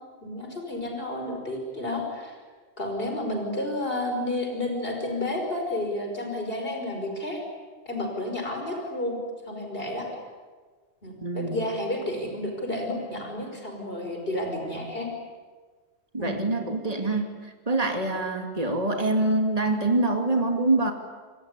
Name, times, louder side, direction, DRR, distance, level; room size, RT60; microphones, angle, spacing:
voice 1, 0.2-2.4 2.8-7.4 7.9-9.1 9.5-10.1 11.0-15.1 16.2-16.4, left 1 dB, 50° left, 3 dB, 5.7 m, -31 dB
voice 2, 11.2-11.6 16.1-17.3 17.7-20.9, right 2 dB, 30° right, 4 dB, 2.6 m, -25 dB
27.5 x 22.0 x 9.7 m, 1.4 s
omnidirectional pair, 1.2 m